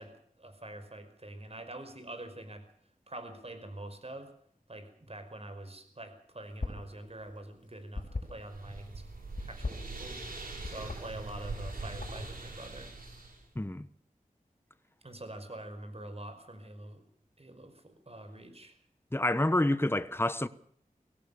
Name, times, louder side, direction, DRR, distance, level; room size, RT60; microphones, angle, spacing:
voice 1, 0.0-2.7 3.1-4.3 4.7-9.1 9.4-10.2 10.6-12.9 15.0-17.0 17.4-18.8, right 1 dB, 45° right, 5.2 m, -45 dB
sound 1, 6.5-6.9 7.2-8.8 9.3-10.3 10.6-11.0 11.5-12.4, left 3 dB, 65° left, 7.1 m, -38 dB
sound 2, 8.1-13.4, right 3 dB, 90° right, 5.9 m, -42 dB
voice 2, 13.5-13.9 19.1-20.5, left 1 dB, 15° left, 1.2 m, -28 dB
23.5 x 17.0 x 7.1 m
wide cardioid pair, 50°, 15 cm